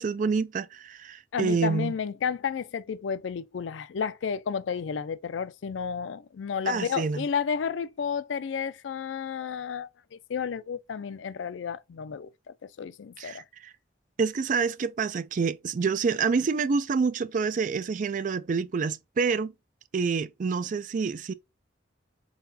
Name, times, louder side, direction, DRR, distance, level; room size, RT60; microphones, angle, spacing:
voice 1, 0.0-1.9 6.7-7.3 13.2-13.7 14.2-19.5 19.9-21.3, right 5 dB, 45° right, 0.3 m, -27 dB
voice 2, 1.3-13.4, left 6 dB, 85° left, 0.4 m, -32 dB
4.1 x 3.9 x 2.6 m
head